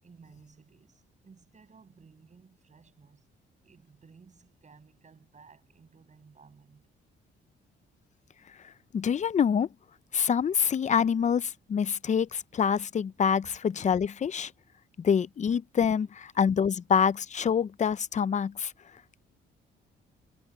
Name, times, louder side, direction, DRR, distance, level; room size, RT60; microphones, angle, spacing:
voice 1, 0.0-3.2 3.6-6.9 16.3-16.4, right 5 dB, 35° right, 7.6 m, -56 dB
voice 2, 8.9-9.7 10.1-14.5 15.0-18.7, left 7 dB, 35° left, 0.6 m, -26 dB
cardioid pair, 90°, 20 cm